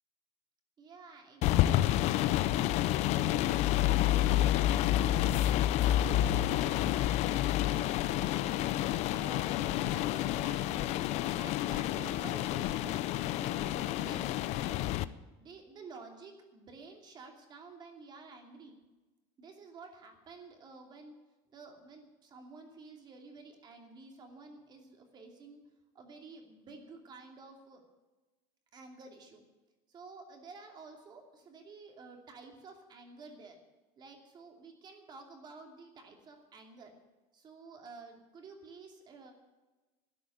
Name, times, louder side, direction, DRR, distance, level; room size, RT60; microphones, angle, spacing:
voice 1, 0.8-7.2 7.6-8.7 9.1-11.0 11.4-14.3 14.5-14.8 15.3-18.7 19.4-21.1 21.5-25.6 25.9-27.8 28.7-29.4 29.9-33.6 34.0-36.9 37.3-39.3, right 3 dB, 30° right, 4 dB, 2.6 m, -51 dB
sound 1, 1.4-15.1, left 13 dB, 50° left, 0.6 m, -29 dB
12.5 x 10.0 x 9.2 m, 1.2 s
cardioid pair, 165°, 15 cm